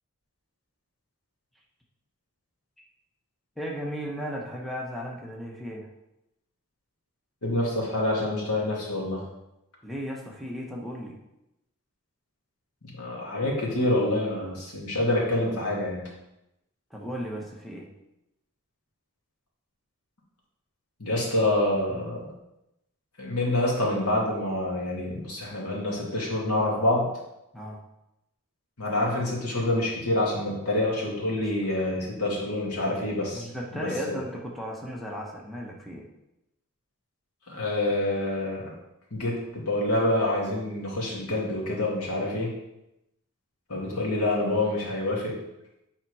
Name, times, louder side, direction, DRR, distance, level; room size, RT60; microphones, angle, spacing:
voice 1, 3.6-5.9 9.8-11.2 16.9-17.9 27.5-27.8 31.3-31.5 33.3-36.1, equal, ahead, -2 dB, 1.0 m, -35 dB
voice 2, 7.4-9.2 13.0-16.1 21.0-22.3 23.2-27.1 28.8-33.5 33.7-34.2 37.5-38.7 39.1-42.5 43.7-45.4, left 1 dB, 90° left, -3 dB, 2.3 m, -27 dB
8.9 x 4.4 x 4.8 m, 0.88 s
head